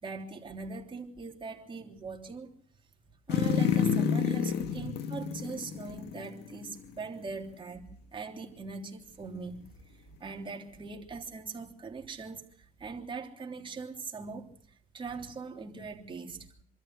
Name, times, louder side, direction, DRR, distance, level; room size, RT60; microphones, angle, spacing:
voice 1, 0.0-2.5 3.3-9.7 10.2-12.4 12.8-14.5 14.9-16.6, right 4 dB, 30° right, 3.5 m, -41 dB
sound 1, 3.3-6.7 7.0-7.1, left 7 dB, 80° left, 2.0 m, -29 dB
25.5 x 13.5 x 7.9 m
cardioid pair, 110°, 17 cm